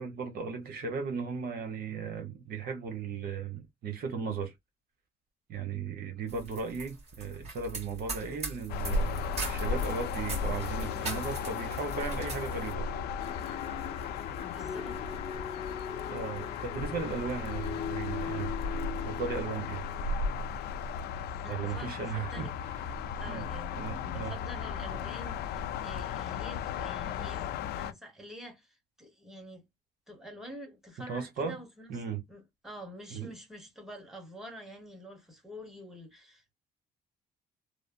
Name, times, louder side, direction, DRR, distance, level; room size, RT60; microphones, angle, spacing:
voice 1, 0.0-4.5 5.5-13.0 16.1-18.5 19.0-19.8 21.5-22.5 23.2-23.5 23.8-24.3 31.1-31.6 31.9-32.2 33.1-33.3, right 5 dB, 60° right, 1.1 m, -36 dB
sound 1, 6.3-12.7, right 3 dB, 40° right, 2.2 m, -41 dB
sound 2, 8.7-27.9, left 5 dB, 75° left, 0.5 m, -35 dB
sound 3, 13.2-20.0, left 7 dB, 35° left, 0.7 m, -41 dB
voice 2, 14.4-15.0 21.4-22.6 23.2-29.6 30.1-32.0 32.3-36.5, equal, ahead, 1.5 m, -47 dB
3.4 x 2.0 x 2.5 m
cardioid pair, 110°, 17 cm